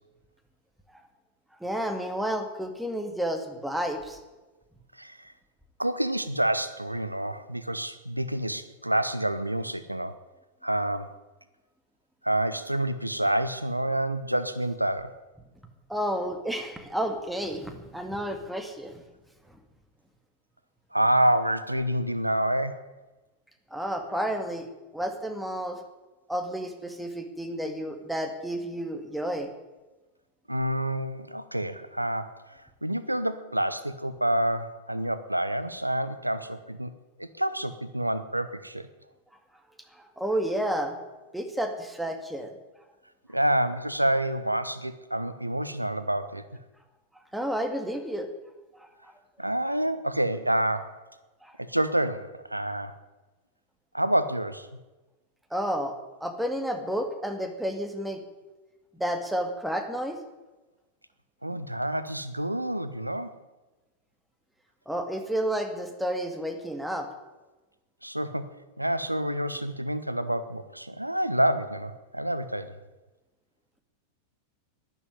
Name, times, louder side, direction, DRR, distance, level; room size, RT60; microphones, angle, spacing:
voice 1, 1.6-4.2 15.9-19.0 23.7-24.7 24.9-25.8 26.3-29.5 39.9-41.0 41.3-42.5 47.3-48.3 48.8-49.1 51.4-51.6 55.5-58.2 58.9-60.2 64.9-67.1, equal, ahead, 5 dB, 2.1 m, -31 dB
voice 2, 5.0-5.3 5.8-10.2 10.6-11.1 12.2-15.1 20.9-22.9 30.5-36.9 37.2-38.9 43.3-46.4 49.4-51.0 51.6-52.9 53.9-54.7 61.4-63.3 68.0-68.5 68.8-72.8, right 1 dB, 85° right, 12 dB, 0.8 m, -28 dB
12.0 x 11.0 x 9.5 m, 1.2 s
figure-of-eight pair, 90°, 0 cm